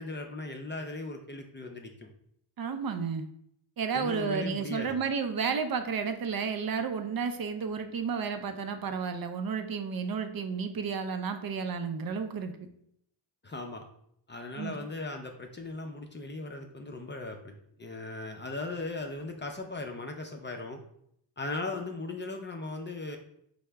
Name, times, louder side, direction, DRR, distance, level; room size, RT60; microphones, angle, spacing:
voice 1, 0.0-2.1 3.9-5.0 13.4-13.8 14.3-17.5 17.8-20.8 21.4-23.2, left 2 dB, 25° left, 3 dB, 0.4 m, -38 dB
voice 2, 2.6-3.2 3.8-12.5 14.6-14.7, right 6 dB, 55° right, 7 dB, 0.5 m, -32 dB
4.5 x 2.1 x 3.3 m, 0.71 s
wide cardioid pair, 90°, 45 cm